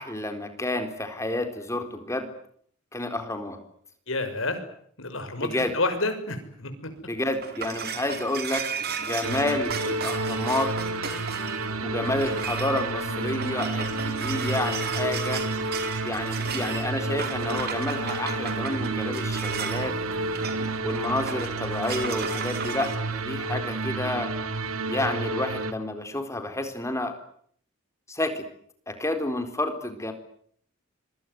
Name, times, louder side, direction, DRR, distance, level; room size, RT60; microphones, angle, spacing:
voice 1, 0.0-2.3 2.9-3.6 5.4-5.7 7.0-8.6 9.0-10.7 11.8-15.4 16.0-20.0 20.8-24.3 24.9-27.1 28.1-28.4 28.9-30.1, left 1 dB, 15° left, 7 dB, 4.1 m, -30 dB
voice 2, 4.1-4.6 5.0-6.9, left 2 dB, 65° left, 8 dB, 6.1 m, -29 dB
sound 1, 7.0-23.0, right 6 dB, 50° right, 4.1 m, -35 dB
sound 2, 9.2-25.7, right 3 dB, 85° right, 2.2 m, -30 dB
sound 3, 10.6-21.0, equal, 65° right, 5.2 m, -42 dB
25.5 x 24.5 x 9.4 m, 0.63 s
head